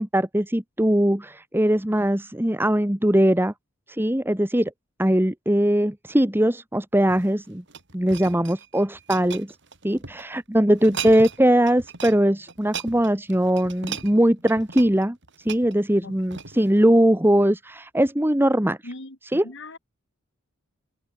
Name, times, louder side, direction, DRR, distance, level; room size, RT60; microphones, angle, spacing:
voice 1, 0.0-3.5 3.9-4.7 5.0-7.6 7.9-9.6 9.8-15.2 15.4-18.8 19.3-19.4, right 1 dB, 10° right, 1.4 m, -21 dB
sound 1, 7.0-10.2 10.7-11.4 11.7-12.2 12.5-16.7 17.3-17.5, right 6 dB, 55° right, 7.3 m, -37 dB
voice 2, 16.0-16.4 18.8-19.8, left 2 dB, 60° left, 3.9 m, -41 dB
head